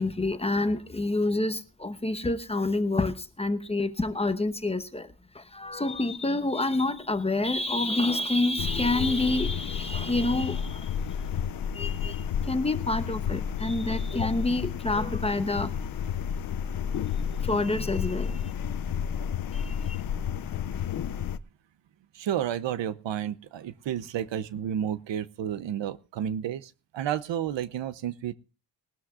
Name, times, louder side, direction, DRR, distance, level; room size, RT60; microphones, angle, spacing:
voice 1, 0.0-11.0 11.7-16.0 17.4-18.5 19.5-20.0, left 2 dB, 15° left, 0.9 m, -28 dB
sound 1, 8.6-21.4, left 8 dB, 50° left, 0.6 m, -31 dB
voice 2, 22.1-28.3, right 10 dB, 70° right, 0.8 m, -31 dB
21.0 x 13.0 x 2.4 m
cardioid pair, 130°, 46 cm